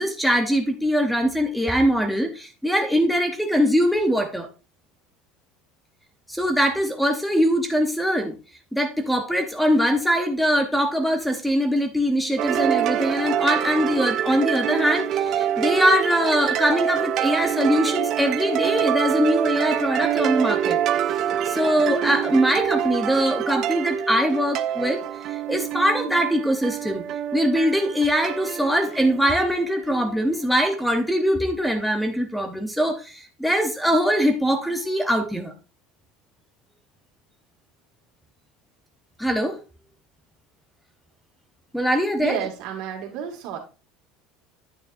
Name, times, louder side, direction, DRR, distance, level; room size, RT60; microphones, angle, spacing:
voice 1, 0.0-4.5 6.3-8.4 8.7-20.8 21.4-25.0 25.3-27.0 27.3-35.5 39.2-39.6 41.7-42.4, equal, ahead, 5 dB, 0.8 m, -22 dB
sound 1, 12.4-30.2, right 10 dB, 45° right, 0.5 m, -26 dB
voice 2, 42.2-43.6, right 8 dB, 65° right, 3 dB, 2.0 m, -31 dB
9.2 x 6.6 x 2.6 m, 0.32 s
cardioid pair, 155°, 0 cm